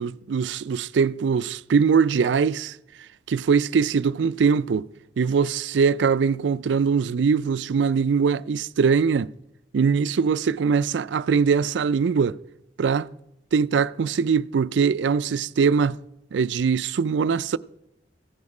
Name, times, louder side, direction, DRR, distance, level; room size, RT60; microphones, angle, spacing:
voice 1, 0.0-2.8 3.3-4.9 5.2-9.3 9.7-12.4 12.8-13.1 13.5-16.0 16.3-17.6, right 6 dB, 90° right, 0.4 m, -22 dB
15.5 x 9.5 x 4.9 m
head